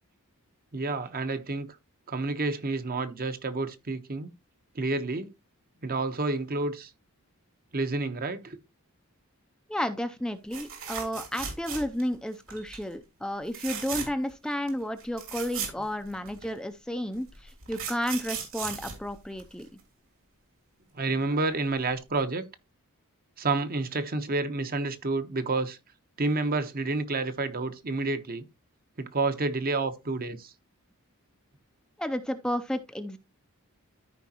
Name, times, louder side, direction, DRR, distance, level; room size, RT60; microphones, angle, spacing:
voice 1, 0.7-1.7 2.1-4.3 4.7-5.3 5.8-6.9 7.7-8.6 20.9-22.5 23.4-25.8 26.2-28.4 29.0-30.5, right 3 dB, 40° right, 1.0 m, -29 dB
voice 2, 9.7-19.7 32.0-33.2, equal, 5° left, 0.5 m, -32 dB
sound 1, 10.5-12.1 12.5-12.8 13.5-14.3 14.7-14.8 15.0-16.5 17.3-19.8 21.7-21.9 22.2-22.3, right 7 dB, 65° right, 3.2 m, -37 dB
14.0 x 5.1 x 2.9 m
head